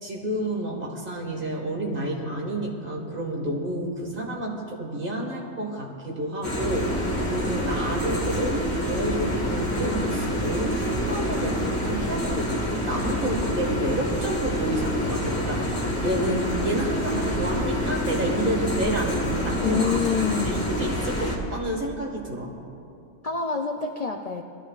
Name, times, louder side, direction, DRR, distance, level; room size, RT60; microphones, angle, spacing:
voice 1, 0.0-12.5 12.9-22.5, right 1 dB, 40° right, -1 dB, 2.0 m, -30 dB
sound 1, 6.4-21.4, equal, 20° left, 1.7 m, -27 dB
voice 2, 19.5-20.5 23.2-24.4, left 6 dB, 65° left, 3 dB, 0.3 m, -26 dB
20.5 x 13.5 x 2.5 m, 2.5 s
omnidirectional pair, 1.5 m